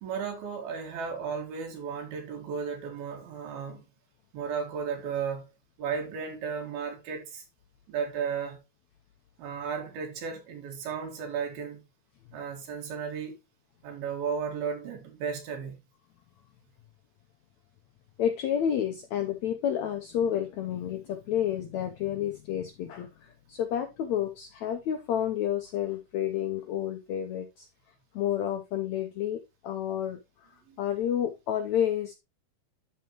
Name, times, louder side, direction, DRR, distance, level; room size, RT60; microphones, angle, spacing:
voice 1, 0.0-3.9 4.3-5.5 5.8-7.4 7.9-8.6 9.4-11.8 12.3-13.4 13.8-15.8 30.7-30.8, right 6 dB, 85° right, 3.8 m, -34 dB
voice 2, 18.2-27.7 28.1-30.2 30.8-32.1, left 10 dB, 85° left, 1.6 m, -30 dB
13.0 x 4.5 x 3.0 m
omnidirectional pair, 4.2 m